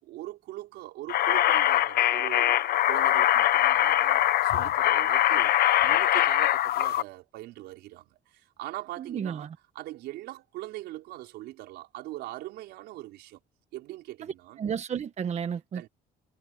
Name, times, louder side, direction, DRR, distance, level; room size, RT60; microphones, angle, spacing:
voice 1, 0.0-9.5 9.7-13.4 13.7-14.6 15.7-15.9, right 16 dB, 85° right, 5.0 m, -41 dB
sound 1, 1.1-7.0, left 13 dB, 65° left, 1.1 m, -23 dB
voice 2, 9.0-9.5 14.6-15.9, right 7 dB, 40° right, 1.3 m, -32 dB
cardioid pair, 110°, 17 cm